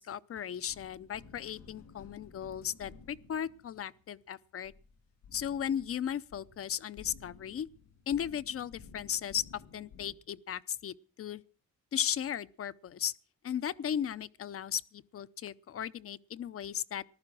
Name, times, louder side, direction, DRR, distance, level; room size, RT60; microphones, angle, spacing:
voice 1, 0.0-4.7 5.3-7.7 8.1-11.4 11.9-13.1 13.4-17.0, left 9 dB, 50° left, 0.7 m, -36 dB
sound 1, 0.7-10.1, left 5 dB, 80° left, 3.4 m, -55 dB
15.0 x 11.5 x 6.1 m
cardioid pair, 90°, 30 cm